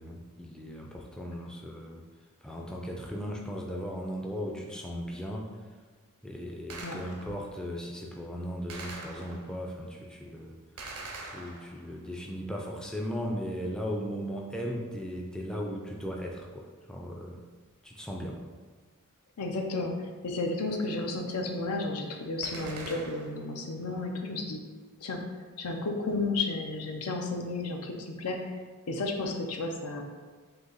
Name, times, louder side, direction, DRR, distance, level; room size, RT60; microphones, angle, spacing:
voice 1, 0.0-2.0 2.4-5.5 6.2-10.5 11.2-17.4 17.8-18.4, equal, 5° left, -1 dB, 0.3 m, -37 dB
Gunshot gunfire, 6.7-7.5 8.7-9.7 10.8-12.0 22.4-23.5, right 2 dB, 80° right, 0.6 m, -43 dB
voice 2, 19.4-24.6 25.0-25.2 25.6-28.5 28.9-30.0, left 3 dB, 85° left, 3 dB, 0.6 m, -32 dB
3.9 x 2.8 x 3.9 m, 1.4 s
head